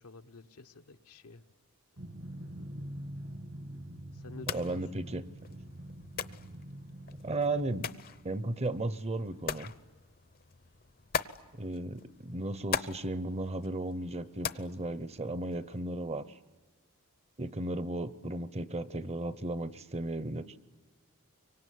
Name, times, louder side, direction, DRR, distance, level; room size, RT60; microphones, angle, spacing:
voice 1, 0.0-1.4 4.1-5.0, left 3 dB, 80° left, 8 dB, 1.0 m, -50 dB
Drum, 2.0-8.4, right 1 dB, 65° right, 1.8 m, -45 dB
sound 1, 4.3-15.8, left 7 dB, 45° left, 0.8 m, -42 dB
voice 2, 4.5-5.2 7.1-7.9 8.2-9.7 11.5-16.2 17.4-20.5, right 2 dB, 30° right, 15 dB, 0.8 m, -35 dB
25.0 x 24.0 x 9.4 m, 1.3 s
head